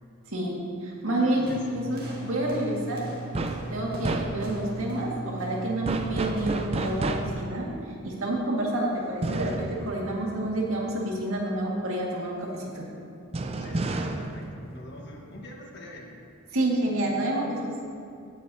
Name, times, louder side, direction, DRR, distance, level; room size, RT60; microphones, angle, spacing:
voice 1, 0.3-1.5 1.7-3.1 3.7-7.7 8.0-12.9 16.5-17.9, right 1 dB, 75° right, -3 dB, 1.9 m, -29 dB
voice 2, 1.2-1.6 13.6-16.1, left 1 dB, 55° left, 0 dB, 1.3 m, -44 dB
sound 1, 1.5-7.3, right 2 dB, 45° right, 1.8 m, -38 dB
sound 2, 3.3-3.7 4.0-4.7 5.9-7.5 9.2-11.0 13.3-15.5, right 2 dB, 30° right, 0.5 m, -31 dB
17.0 x 8.2 x 2.8 m, 2.5 s
head